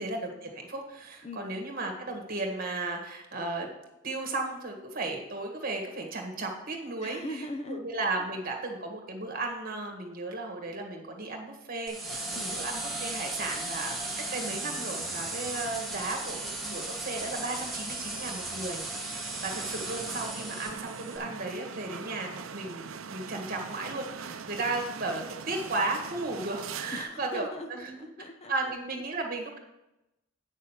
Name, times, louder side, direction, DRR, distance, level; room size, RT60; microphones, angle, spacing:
voice 1, 0.0-3.7 4.0-7.2 7.7-22.8 23.1-28.0 28.5-29.6, right 2 dB, 40° right, 2 dB, 1.7 m, -35 dB
voice 2, 1.2-1.5 7.0-7.9 12.3-12.6 26.9-28.7, left 1 dB, 30° left, 6 dB, 0.6 m, -41 dB
sound 1, 11.9-21.2, right 2 dB, ahead, 1.3 m, -36 dB
sound 2, 12.1-27.0, right 6 dB, 70° right, 0.6 m, -43 dB
8.6 x 6.4 x 5.8 m, 0.94 s
head